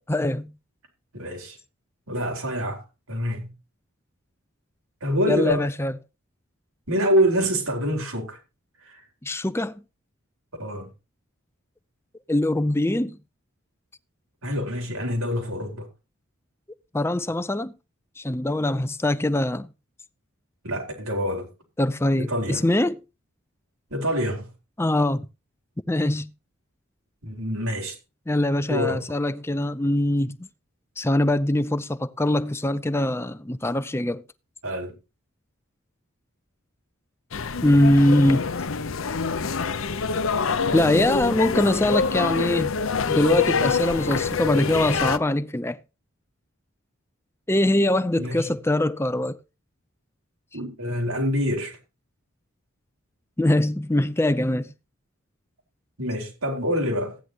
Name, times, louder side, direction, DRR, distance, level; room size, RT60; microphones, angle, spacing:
voice 1, 0.1-0.5 5.3-6.0 9.2-9.8 12.3-13.2 16.9-17.7 18.2-19.7 21.8-23.0 24.8-25.3 25.9-26.3 28.3-30.5 31.0-34.2 37.6-38.5 40.7-42.7 43.1-45.8 47.5-49.4 53.4-54.7, left 1 dB, 10° left, 0.5 m, -22 dB
voice 2, 1.1-1.6 2.1-2.8 3.1-3.5 5.0-5.7 6.9-8.4 8.9-9.0 10.6-10.9 14.4-15.9 20.6-21.5 22.2-22.6 23.9-24.5 27.2-27.9 28.6-29.0 34.6-34.9 48.2-48.4 50.5-51.8 56.0-57.1, equal, 90° right, 4.8 m, -26 dB
sound 1, 37.3-45.2, left 5 dB, 70° left, 0.8 m, -25 dB
15.0 x 10.0 x 2.9 m
head